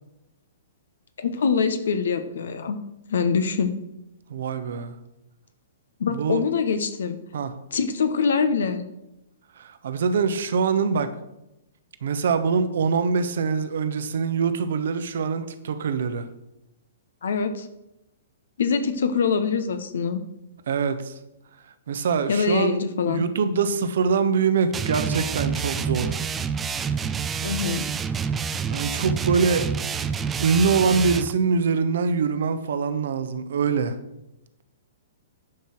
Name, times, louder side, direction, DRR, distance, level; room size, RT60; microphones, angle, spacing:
voice 1, 1.2-2.8 3.1-3.7 6.0-7.2 7.7-8.8 17.2-17.7 18.6-20.2 22.3-23.2 27.4-27.9, left 5 dB, 60° left, 9 dB, 1.0 m, -24 dB
voice 2, 4.3-4.9 6.1-6.4 7.3-7.5 9.6-11.1 12.0-16.3 20.7-21.1 21.9-26.1 28.7-29.6 30.4-34.0, right 5 dB, 55° right, 10 dB, 1.0 m, -24 dB
sound 1, 24.7-31.3, right 6 dB, 15° right, 0.5 m, -28 dB
10.5 x 5.7 x 6.3 m, 0.89 s
figure-of-eight pair, 115°, 0 cm